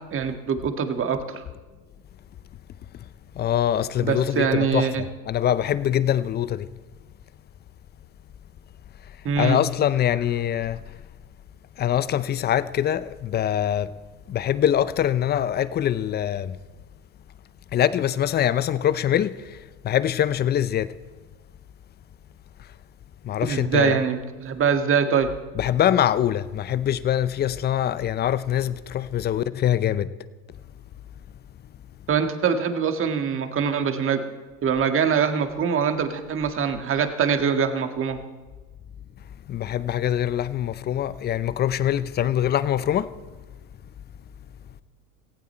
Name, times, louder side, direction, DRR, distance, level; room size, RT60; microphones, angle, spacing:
voice 1, 0.1-1.4 4.0-5.0 9.3-9.6 23.5-25.3 32.1-34.2 34.6-38.2, right 7 dB, 30° right, 1.8 m, -23 dB
voice 2, 3.3-6.7 9.0-11.0 11.8-13.9 14.3-16.6 17.7-20.9 22.6-22.7 23.2-24.0 25.5-30.1 39.5-43.1, left 10 dB, 20° left, 0.5 m, -24 dB
18.0 x 16.0 x 4.4 m
hypercardioid pair, 105°, 45 cm